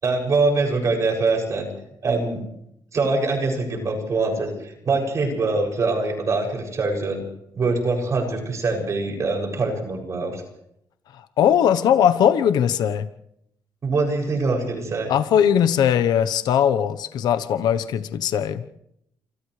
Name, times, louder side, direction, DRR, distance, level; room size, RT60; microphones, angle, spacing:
voice 1, 0.0-1.7 2.0-2.4 2.9-7.2 7.6-10.4 13.8-15.1, right 3 dB, 50° right, 1 dB, 7.1 m, -23 dB
voice 2, 11.1-13.1 15.1-18.8, left 9 dB, 85° left, 11 dB, 1.0 m, -20 dB
29.5 x 27.5 x 3.3 m, 0.77 s
cardioid pair, 105°, 7 cm